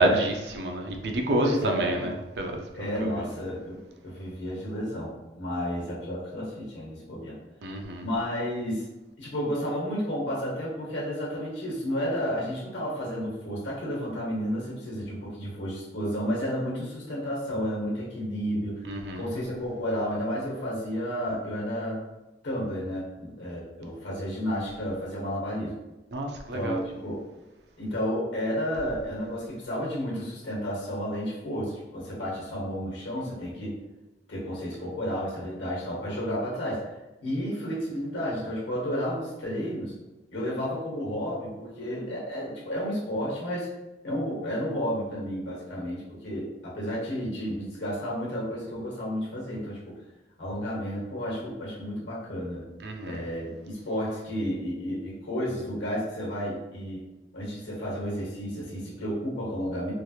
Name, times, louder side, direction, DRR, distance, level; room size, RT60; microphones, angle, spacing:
voice 1, 0.0-2.9 7.6-8.0 18.9-19.2 26.1-26.8 52.8-53.2, right 2 dB, 65° right, 3 dB, 0.4 m, -28 dB
voice 2, 1.4-2.1 2.7-7.4 8.0-8.9 9.2-18.8 19.1-22.0 22.4-25.7 26.5-27.2 27.8-33.8 34.3-36.9 37.2-39.9 40.3-43.7 44.0-49.9 50.4-52.7 53.0-57.0 57.3-59.9, equal, 90° left, -5 dB, 1.2 m, -32 dB
3.2 x 2.8 x 2.3 m, 1.1 s
head